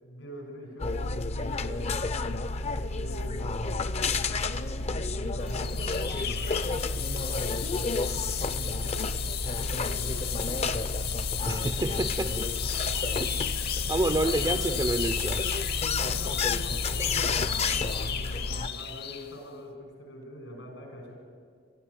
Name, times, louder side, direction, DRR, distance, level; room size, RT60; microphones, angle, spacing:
voice 1, 0.0-2.4 2.9-3.6 4.0-6.9 7.1-7.9 8.6-9.1 9.4-10.6 13.8-14.8 15.9-21.1, equal, 85° left, 2 dB, 6.7 m, -44 dB
sound 1, 0.8-18.7, left 3 dB, 35° left, 0.6 m, -31 dB
sound 2, 5.5-19.3, left 10 dB, 55° left, 1.1 m, -34 dB
voice 2, 11.5-12.5 13.0-13.3 13.9-15.5, right 2 dB, 20° right, 10 dB, 0.5 m, -29 dB
22.5 x 13.5 x 9.8 m, 2.1 s
head